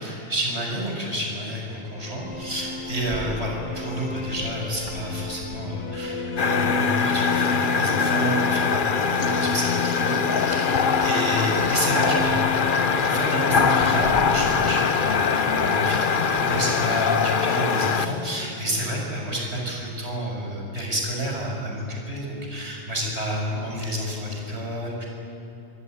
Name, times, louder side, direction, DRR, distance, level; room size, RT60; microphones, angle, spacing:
voice 1, 0.0-12.4 12.9-25.1, equal, 65° right, -1 dB, 7.1 m, -30 dB
sound 1, 1.8-19.7, left 4 dB, 80° left, 1.8 m, -31 dB
sound 2, 2.0-7.3 7.7-7.8 8.2-9.0 9.5-16.0 16.3-19.8, right 1 dB, 45° right, 2.5 m, -45 dB
sound 3, 6.4-18.1, left 6 dB, 50° left, 1.0 m, -23 dB
24.5 x 23.0 x 9.6 m, 2.8 s
omnidirectional pair, 1.2 m